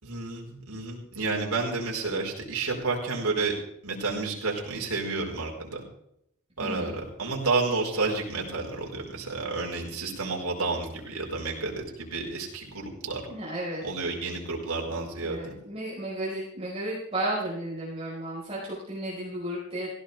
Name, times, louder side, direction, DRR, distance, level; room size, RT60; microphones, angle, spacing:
voice 1, 0.0-3.5 3.8-5.8 6.6-13.2 13.8-15.5, right 3 dB, 80° right, -1 dB, 5.1 m, -30 dB
voice 2, 6.6-6.9 13.3-13.8 15.2-19.9, right 1 dB, 25° right, -6 dB, 4.8 m, -33 dB
18.0 x 16.0 x 3.5 m, 0.74 s
head